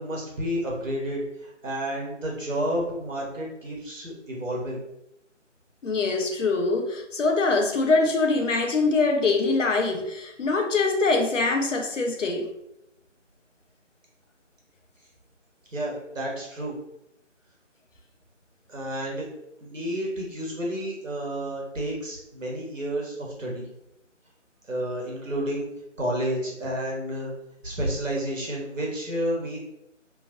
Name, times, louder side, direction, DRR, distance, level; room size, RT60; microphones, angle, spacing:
voice 1, 0.0-4.8 15.7-16.7 18.7-19.3 19.6-23.7 24.7-25.7 26.0-27.3 27.6-29.6, right 1 dB, 85° right, -3 dB, 1.1 m, -30 dB
voice 2, 5.8-12.5, left 3 dB, 75° left, 4 dB, 0.7 m, -23 dB
2.9 x 2.4 x 2.7 m, 0.83 s
figure-of-eight pair, 160°, 38 cm